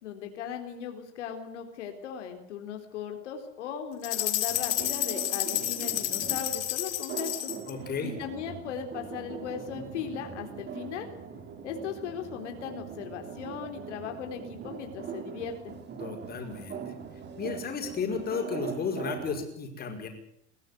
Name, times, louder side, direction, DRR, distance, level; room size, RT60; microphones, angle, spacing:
voice 1, 0.0-7.5 8.0-11.1 11.6-15.8, left 8 dB, 85° left, 5 dB, 4.0 m, -38 dB
sound 1, 4.0-7.7, left 15 dB, 50° left, 3.1 m, -30 dB
sound 2, 4.5-19.4, right 7 dB, 30° right, 3.2 m, -41 dB
voice 2, 7.7-8.1 16.0-16.9 17.4-20.1, left 5 dB, 25° left, 4 dB, 5.4 m, -33 dB
22.0 x 15.0 x 9.5 m, 0.69 s
supercardioid pair, 130°, 35 cm